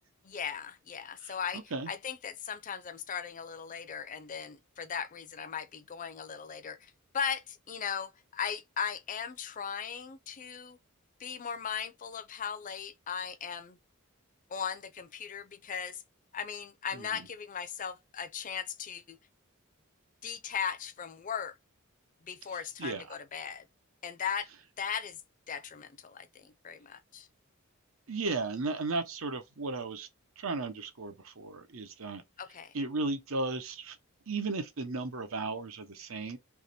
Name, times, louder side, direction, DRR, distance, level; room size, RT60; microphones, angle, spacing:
voice 1, 0.2-1.6 1.9-10.8 11.2-13.8 14.5-16.0 16.3-19.2 20.2-21.5 22.2-23.6 24.0-24.5 24.8-25.2 25.5-27.3 32.4-32.7, left 7 dB, 40° left, 0.5 m, -38 dB
voice 2, 1.2-1.9 16.9-17.3 22.5-23.2 28.1-30.1 30.4-32.2 32.7-34.0 34.3-36.4, right 3 dB, 75° right, 0.9 m, -35 dB
3.6 x 2.9 x 4.2 m
head